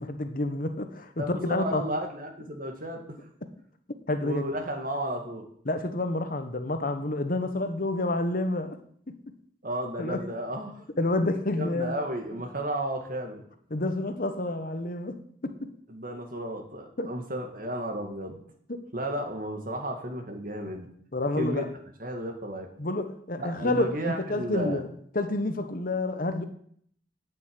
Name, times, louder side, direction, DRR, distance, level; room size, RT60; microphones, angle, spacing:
voice 1, 0.0-1.8 4.1-4.4 5.6-8.8 9.1-9.3 10.0-10.3 11.0-12.0 13.7-15.7 17.0-17.1 18.7-18.8 21.1-21.7 22.8-24.9 25.1-26.4, left 2 dB, 45° left, 1.1 m, -29 dB
voice 2, 1.2-3.2 4.2-5.5 9.6-10.9 11.5-13.4 15.9-18.4 18.9-20.9 21.4-21.7 22.0-22.7 23.4-24.8, right 1 dB, 45° right, 2.2 m, -33 dB
8.9 x 8.1 x 8.9 m
head